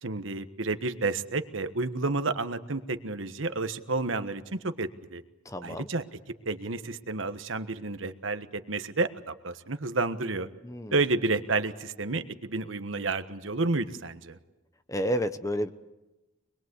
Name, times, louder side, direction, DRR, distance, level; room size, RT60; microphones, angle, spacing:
voice 1, 0.0-5.2 5.6-6.0 6.4-10.5 10.9-14.4, right 3 dB, 80° right, 10 dB, 1.4 m, -30 dB
voice 2, 5.5-5.9 10.6-11.0 14.9-15.7, equal, 15° left, 10 dB, 1.0 m, -30 dB
25.0 x 21.5 x 8.1 m, 1.0 s
head